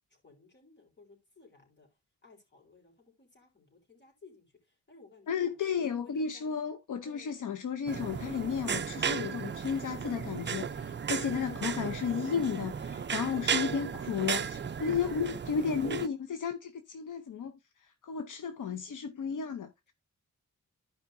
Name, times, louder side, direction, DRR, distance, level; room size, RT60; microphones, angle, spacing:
voice 1, 0.1-1.9 2.2-6.5 7.0-7.5 11.1-12.3 13.5-13.9, left 3 dB, 35° left, 3.9 m, -56 dB
voice 2, 5.3-19.9, left 7 dB, 75° left, 0.8 m, -33 dB
sound 1, 7.9-16.1, right 7 dB, 35° right, 0.5 m, -35 dB
14.0 x 5.1 x 2.6 m
wide cardioid pair, 130°, 31 cm